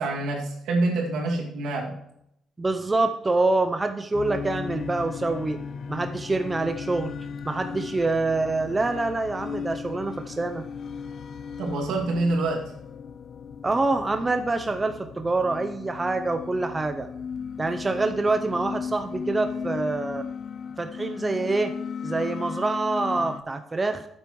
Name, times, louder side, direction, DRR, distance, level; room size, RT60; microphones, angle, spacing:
voice 1, 0.0-2.0 11.6-12.6, right 2 dB, 80° right, 0 dB, 2.3 m, -26 dB
voice 2, 2.6-5.6 5.9-7.1 7.4-10.7 13.6-17.1 17.6-20.2 20.8-21.7 22.0-24.1, right 3 dB, 25° right, 7 dB, 0.6 m, -26 dB
sound 1, 4.1-23.4, left 6 dB, 60° left, 0.5 m, -36 dB
12.5 x 8.7 x 3.1 m, 0.77 s
cardioid pair, 90°, 0 cm